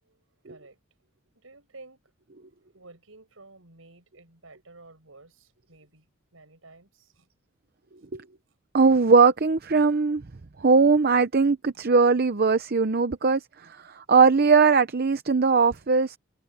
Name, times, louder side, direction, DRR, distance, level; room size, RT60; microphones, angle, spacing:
voice 1, 0.0-0.8 1.3-2.0 2.7-7.3 8.0-8.1 13.6-13.9, right 3 dB, 85° right, 6.1 m, -52 dB
voice 2, 8.7-10.2 10.6-16.2, right 4 dB, 50° right, 0.7 m, -20 dB
head